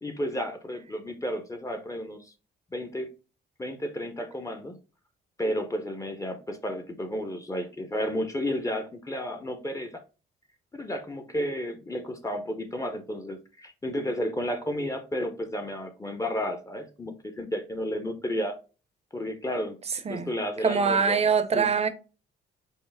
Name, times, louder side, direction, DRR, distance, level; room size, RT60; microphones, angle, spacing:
voice 1, 0.0-2.3 2.7-3.1 3.6-4.8 5.4-10.0 10.7-18.6 19.1-19.8 20.1-21.2 21.5-21.7, equal, 15° left, 0.6 m, -32 dB
voice 2, 19.9-20.3 20.6-21.9, right 5 dB, 30° right, 0.6 m, -24 dB
5.3 x 2.0 x 3.4 m
cardioid pair, 90°, 20 cm